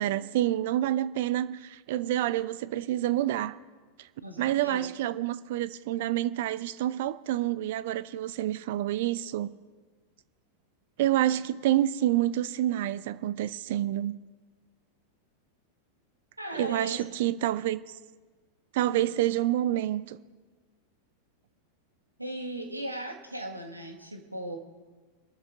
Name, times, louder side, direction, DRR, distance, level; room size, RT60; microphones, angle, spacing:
voice 1, 0.0-3.6 4.0-4.1 4.4-9.5 11.0-14.2 16.5-18.0 18.7-20.2, right 13 dB, 50° right, 0.4 m, -28 dB
voice 2, 4.2-4.9 16.4-17.0 22.2-24.6, right 1 dB, 85° right, 1.8 m, -37 dB
25.5 x 13.0 x 2.6 m
figure-of-eight pair, 90°, 0 cm